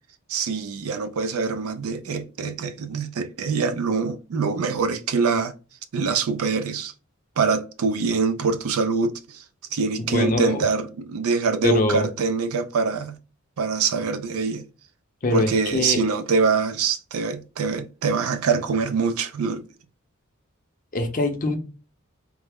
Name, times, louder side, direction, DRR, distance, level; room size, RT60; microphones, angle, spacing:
voice 1, 0.3-5.5 5.9-6.9 7.4-9.4 9.7-13.2 13.6-14.6 15.3-19.6, right 4 dB, 85° right, 0.4 m, -24 dB
voice 2, 10.0-10.7 11.6-12.1 15.2-16.0 20.9-21.6, left 2 dB, 40° left, 0.6 m, -23 dB
3.3 x 2.0 x 3.4 m
head